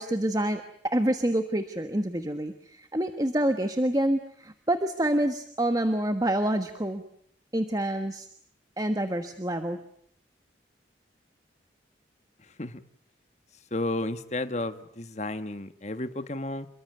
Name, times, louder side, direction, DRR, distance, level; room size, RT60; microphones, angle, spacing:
voice 1, 0.0-7.0 7.5-8.3 8.8-9.8, right 1 dB, 20° right, 1.3 m, -27 dB
voice 2, 13.7-16.7, left 2 dB, 35° left, 1.4 m, -32 dB
28.0 x 23.0 x 7.9 m
head